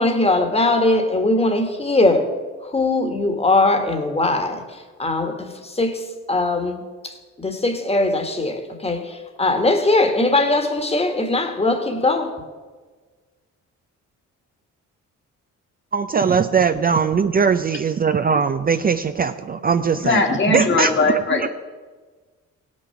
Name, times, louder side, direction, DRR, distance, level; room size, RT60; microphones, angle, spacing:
voice 1, 0.0-2.3 2.6-12.3, left 2 dB, 20° left, 1.6 m, -21 dB
voice 2, 15.9-21.5, right 6 dB, 30° right, 0.5 m, -20 dB
voice 3, 20.0-21.5, left 3 dB, 40° left, 1.7 m, -19 dB
16.5 x 6.4 x 5.8 m
cardioid pair, 90°, 30 cm